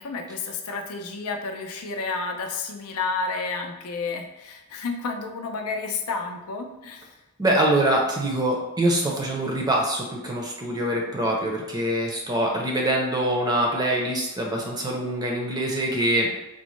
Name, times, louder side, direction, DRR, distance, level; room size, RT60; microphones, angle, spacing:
voice 1, 0.0-7.1, left 4 dB, 80° left, 3 dB, 0.5 m, -31 dB
voice 2, 7.4-16.3, right 1 dB, 20° right, -1 dB, 0.5 m, -24 dB
3.9 x 2.1 x 3.1 m, 0.99 s
head